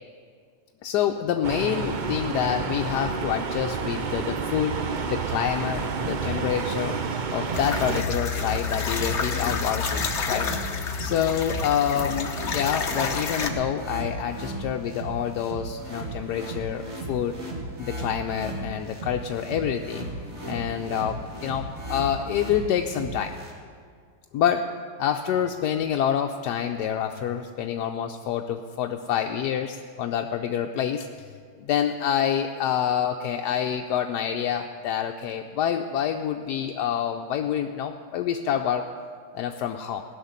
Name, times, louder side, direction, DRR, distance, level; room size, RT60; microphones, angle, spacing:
voice 1, 0.8-4.8 5.1-7.0 7.3-10.5 11.0-17.4 17.8-20.1 20.4-23.3 24.3-24.7 25.0-31.1 31.6-38.9 39.3-40.0, left 9 dB, 80° left, 4 dB, 1.2 m, -27 dB
sound 1, 1.4-8.0, right 5 dB, 60° right, 0.5 m, -29 dB
sound 2, 7.5-13.5, left 5 dB, 50° left, 1.2 m, -29 dB
sound 3, 7.5-23.5, right 1 dB, 40° right, 2.6 m, -36 dB
17.0 x 6.6 x 9.6 m, 2.1 s
omnidirectional pair, 1.8 m